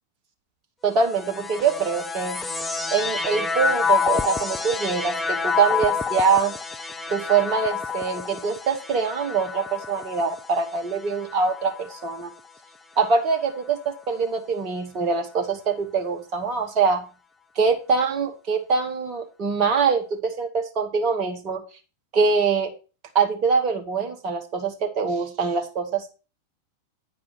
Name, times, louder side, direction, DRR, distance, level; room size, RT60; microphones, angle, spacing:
voice 1, 0.8-2.5 2.9-6.6 7.1-12.3 13.0-17.0 17.6-21.6 22.1-22.7 23.1-26.1, right 5 dB, 35° right, 3 dB, 1.9 m, -24 dB
sound 1, 1.0-12.5 13.2-14.0, left 5 dB, 10° left, 0.6 m, -29 dB
9.6 x 4.8 x 6.0 m, 0.32 s
figure-of-eight pair, 90°, 0 cm